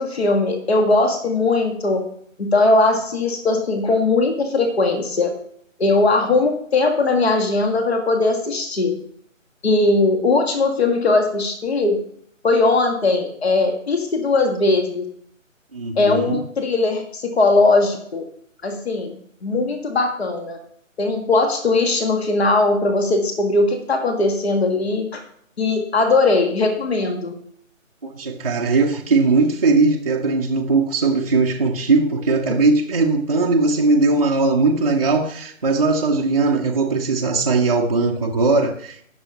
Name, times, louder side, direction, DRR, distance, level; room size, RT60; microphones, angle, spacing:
voice 1, 0.0-2.0 2.4-5.3 5.8-8.9 9.6-12.0 12.4-15.1 16.0-18.2 18.6-20.6 21.0-25.2 25.6-27.3 32.5-32.6, left 3 dB, 50° left, 1.7 m, -19 dB
voice 2, 15.7-16.4 28.0-39.0, right 3 dB, 30° right, 0.7 m, -19 dB
17.5 x 6.9 x 2.9 m
figure-of-eight pair, 145°, 40 cm